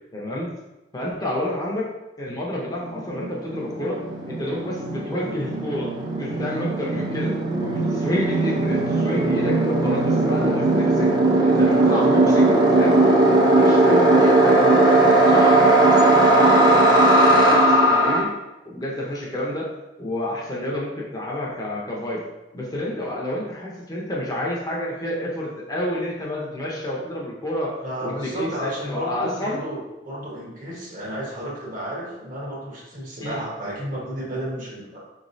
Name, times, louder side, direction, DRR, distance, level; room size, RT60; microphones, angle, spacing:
voice 1, 0.1-0.5 0.9-1.9 2.2-4.0 4.3-5.9 6.2-11.1 11.4-13.0 13.4-18.3 18.7-19.7 20.0-22.2 22.5-29.6 33.2-33.4, left 1 dB, 20° left, -4 dB, 0.7 m, -29 dB
sound 1, 2.7-2.8 3.0-18.2, right 2 dB, 25° right, 0.5 m, -18 dB
voice 2, 27.8-35.0, right 1 dB, 50° right, -4 dB, 1.3 m, -32 dB
4.7 x 3.1 x 2.6 m, 0.98 s
head